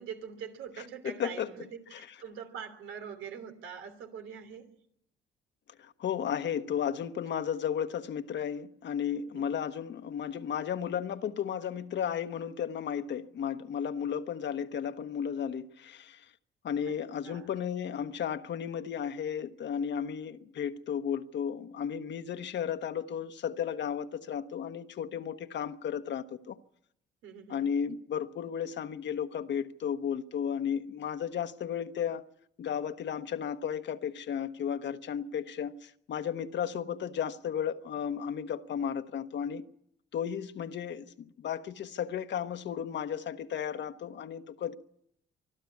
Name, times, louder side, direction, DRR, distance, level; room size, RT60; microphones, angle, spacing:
voice 1, 0.0-1.7 2.0-4.7 9.3-9.5 16.8-16.9 17.2-17.5 27.2-27.7, right 7 dB, 85° right, 3.2 m, -43 dB
voice 2, 1.0-1.5 1.9-2.0 5.8-16.2 16.6-26.6 27.5-32.2 32.6-39.6 40.1-44.7, left 8 dB, 65° left, 1.2 m, -34 dB
24.5 x 13.0 x 8.5 m
cardioid pair, 90°, 20 cm